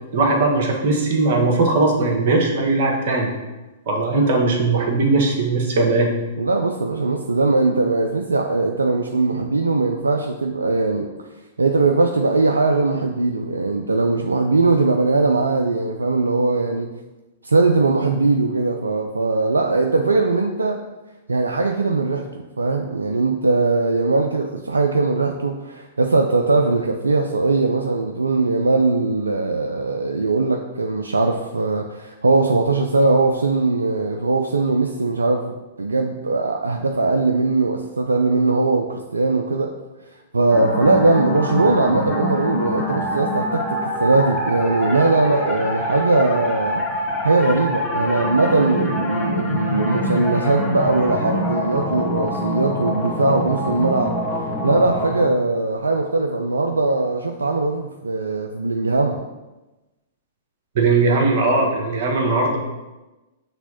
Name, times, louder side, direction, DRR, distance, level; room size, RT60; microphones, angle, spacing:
voice 1, 0.1-3.3 3.8-6.1 60.7-62.6, right 3 dB, 50° right, 0 dB, 1.5 m, -19 dB
voice 2, 6.4-11.1 11.6-16.9 17.4-20.8 21.3-39.7 40.3-46.8 47.2-54.1 54.6-59.2, right 3 dB, 85° right, 3 dB, 0.4 m, -20 dB
sound 1, 40.5-55.3, left 1 dB, 10° left, 1.8 m, -25 dB
6.0 x 3.5 x 5.6 m, 1.1 s
figure-of-eight pair, 105°, 0 cm